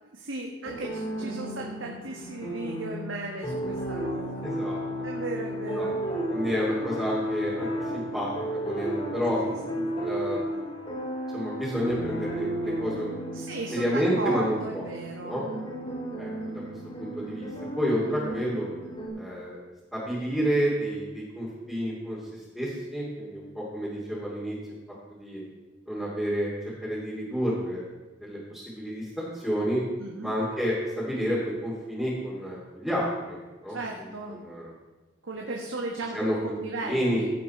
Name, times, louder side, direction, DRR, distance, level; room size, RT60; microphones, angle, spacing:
voice 1, 0.0-4.4 5.0-6.0 9.4-9.9 13.3-15.4 30.0-30.3 33.7-34.4 35.2-37.3, right 2 dB, 80° right, 0 dB, 1.4 m, -36 dB
sound 1, 0.6-19.1, equal, 30° left, 4.1 m, -33 dB
voice 2, 4.4-4.8 5.7-5.9 6.3-9.4 9.9-10.6 11.3-13.4 13.7-14.9 15.2-15.4 16.2-16.6 17.0-17.5 17.7-18.7 19.1-19.6 19.9-24.5 25.1-25.4 25.9-26.5 26.8-27.8 28.2-29.8 30.2-33.4 33.6-34.7 36.1-36.4 36.8-37.3, equal, ahead, -8 dB, 2.8 m, -30 dB
16.5 x 7.5 x 4.4 m, 1.2 s
head